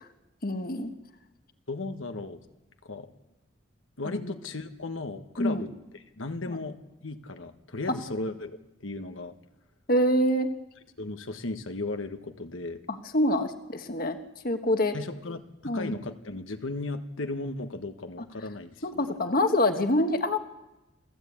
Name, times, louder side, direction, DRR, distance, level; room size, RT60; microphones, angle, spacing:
voice 1, 0.4-0.9 4.0-4.3 5.4-5.6 6.5-6.6 9.9-10.5 12.9-14.2 14.4-14.9 15.6-15.9 18.8-20.4, left 1 dB, 45° left, 7 dB, 1.4 m, -26 dB
voice 2, 1.7-2.4 2.8-3.1 4.0-8.6 8.8-9.3 11.0-12.8 14.9-19.2, left 2 dB, 90° left, 7 dB, 1.4 m, -36 dB
28.0 x 15.5 x 8.6 m, 1.0 s
head